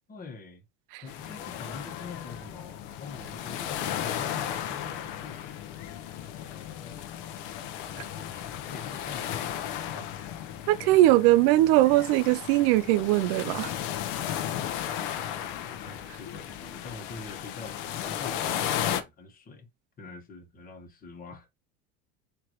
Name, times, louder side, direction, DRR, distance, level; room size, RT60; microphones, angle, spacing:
voice 1, 0.1-0.6 1.0-5.4 6.8-7.1 7.9-10.2 14.9-15.0 15.3-19.7 20.0-21.5, left 4 dB, 25° left, 1.4 m, -45 dB
sound 1, 1.1-19.0, left 10 dB, 65° left, 0.8 m, -35 dB
voice 2, 10.7-13.7, right 16 dB, 70° right, 0.5 m, -21 dB
4.5 x 3.0 x 3.0 m
supercardioid pair, 115°, 33 cm